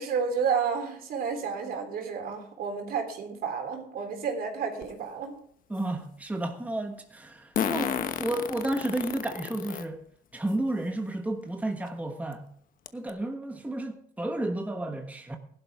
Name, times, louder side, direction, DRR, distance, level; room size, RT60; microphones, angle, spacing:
voice 1, 0.0-5.3, right 6 dB, 60° right, 3.6 m, -31 dB
Fart, 4.8-4.9 7.6-9.8 10.5-10.6 11.9-12.0 12.3-12.4 12.9-13.1, left 8 dB, 55° left, 1.2 m, -31 dB
voice 2, 5.7-10.0 10.3-12.5 12.9-15.4, right 1 dB, 10° right, 1.3 m, -32 dB
16.0 x 11.5 x 3.6 m
cardioid pair, 110°, 17 cm